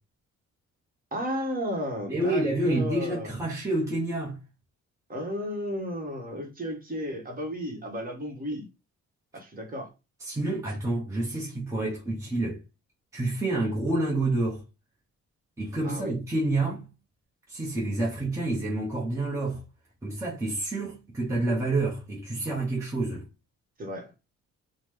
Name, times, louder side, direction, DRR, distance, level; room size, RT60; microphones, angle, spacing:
voice 1, 1.1-3.4 5.1-8.7 9.3-9.9 15.8-16.1 23.8-24.1, equal, 30° right, 1.1 m, -33 dB
voice 2, 2.1-4.4 10.2-12.6 13.1-14.6 15.6-16.9 17.5-19.6 20.0-23.3, right 2 dB, 10° right, 0.8 m, -28 dB
2.9 x 2.1 x 3.5 m
cardioid pair, 90°, 30 cm